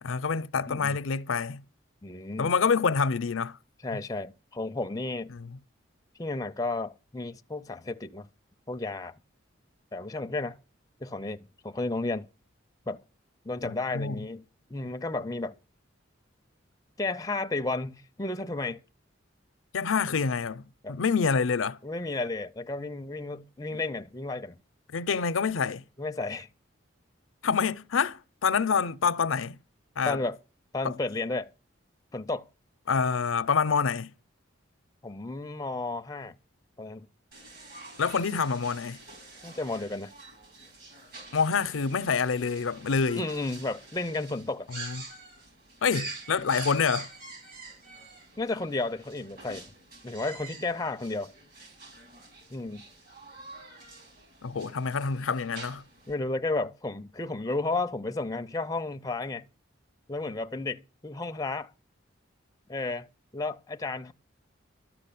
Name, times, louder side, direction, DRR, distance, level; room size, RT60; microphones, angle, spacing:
voice 1, 0.0-1.6 2.4-3.6 5.3-5.6 13.6-14.3 19.7-20.6 20.9-21.8 23.7-23.8 24.9-25.8 27.4-29.6 30.0-30.2 30.8-31.0 32.9-34.1 38.0-39.0 41.3-43.3 44.7-45.0 45.8-47.1 54.4-55.8, left 5 dB, 85° left, 0.6 m, -27 dB
voice 2, 2.0-2.5 3.8-5.3 6.2-8.3 8.7-9.1 9.9-10.6 11.0-12.3 12.9-13.0 13.4-14.4 14.7-15.6 17.0-18.8 20.8-21.0 21.8-24.6 26.0-26.5 30.0-30.4 30.7-31.5 32.1-32.5 35.0-36.3 36.8-37.1 39.4-40.1 43.2-44.7 48.4-49.6 50.0-51.3 52.5-52.8 56.1-59.4 60.1-61.7 62.7-63.1 63.3-64.1, left 2 dB, 20° left, 0.5 m, -32 dB
sound 1, 37.3-56.1, right 3 dB, 50° right, 4.7 m, -46 dB
13.0 x 6.0 x 8.4 m
head